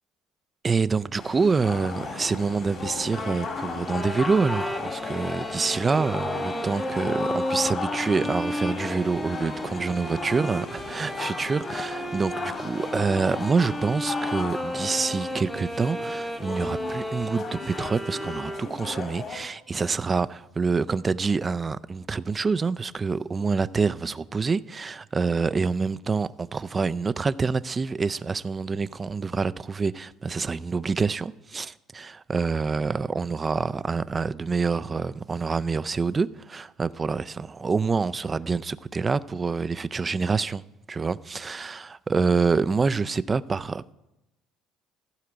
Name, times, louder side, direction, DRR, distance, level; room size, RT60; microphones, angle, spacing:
voice 1, 0.6-40.6 40.9-43.9, right 4 dB, 25° right, 0.4 m, -26 dB
sound 1, 1.2-19.4, left 4 dB, 45° left, 2.4 m, -35 dB
sound 2, 3.9-19.0, equal, ahead, 0.9 m, -33 dB
14.5 x 4.9 x 7.8 m
supercardioid pair, 100°, 0 cm